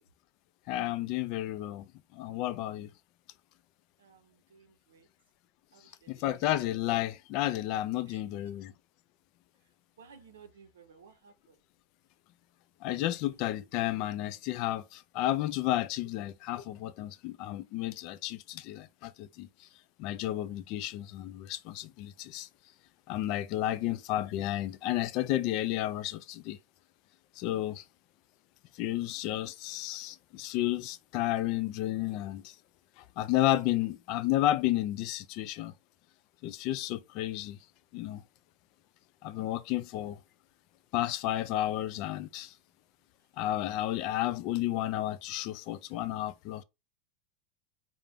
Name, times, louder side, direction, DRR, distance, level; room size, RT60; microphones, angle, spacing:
voice 1, 0.7-1.8 2.1-2.9 6.1-8.7 12.8-19.5 20.0-22.5 23.1-26.6 27.4-27.8 28.8-32.5 33.2-35.7 36.4-37.6 37.9-38.2 39.2-40.2 40.9-42.5 43.4-46.6, left 14 dB, 55° left, 0.3 m, -32 dB
voice 2, 4.0-5.1 5.7-6.2 8.1-8.2 10.0-11.6 23.7-23.8 39.4-39.5 45.1-45.2, right 6 dB, 90° right, 0.5 m, -57 dB
2.5 x 2.1 x 3.3 m
hypercardioid pair, 105°, 0 cm